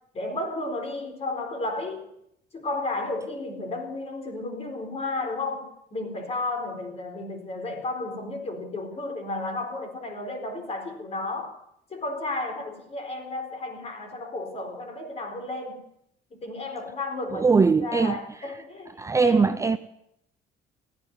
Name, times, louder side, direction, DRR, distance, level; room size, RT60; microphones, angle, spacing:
voice 1, 0.1-2.0 2.5-11.6 11.9-15.8 16.3-17.5 17.8-18.9 19.2-19.6, left 2 dB, 40° left, 4.3 m, -33 dB
voice 2, 17.3-18.2 19.0-19.8, right 4 dB, 20° right, 0.6 m, -21 dB
15.0 x 9.7 x 9.4 m
cardioid pair, 110°, 17 cm